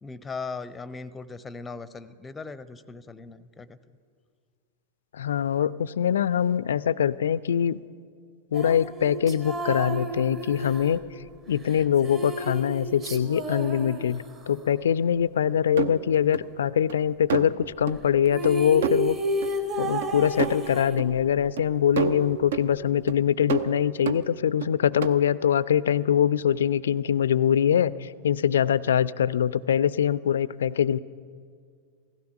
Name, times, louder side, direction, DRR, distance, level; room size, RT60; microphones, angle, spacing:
voice 1, 0.0-3.8, left 4 dB, 15° left, 16 dB, 0.6 m, -38 dB
voice 2, 5.1-7.8 8.5-11.0 11.5-19.2 19.8-31.0, left 9 dB, 65° left, 20 dB, 0.3 m, -23 dB
sound 1, 8.5-14.7 18.0-18.1 18.3-21.5, right 1 dB, 30° right, 1.3 m, -32 dB
sound 2, 15.8-16.4 16.9-17.0 17.3-17.6 17.9-18.0 18.4-18.5 18.8-19.0 19.4-19.5 20.0-20.1 20.4-20.6 21.0-21.1 21.6-21.7 22.0-22.7 23.1-23.2 23.5-24.7 25.0-25.1, right 8 dB, 60° right, 0.6 m, -29 dB
16.5 x 15.0 x 5.8 m, 2.1 s
figure-of-eight pair, 90°, 0 cm